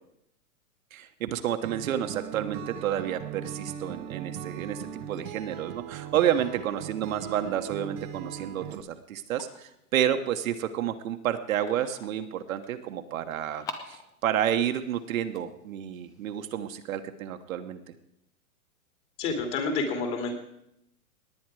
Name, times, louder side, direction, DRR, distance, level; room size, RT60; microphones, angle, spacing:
voice 1, 0.9-17.8, right 10 dB, 65° right, 7 dB, 1.2 m, -30 dB
Acoustic guitar, 1.6-8.8, right 9 dB, 35° right, 0.9 m, -39 dB
sound 1, 7.4-16.8, left 4 dB, 10° left, 0.4 m, -49 dB
voice 2, 19.2-20.3, left 4 dB, 35° left, 3 dB, 2.9 m, -29 dB
18.5 x 9.3 x 4.8 m, 0.80 s
hypercardioid pair, 140°, 45 cm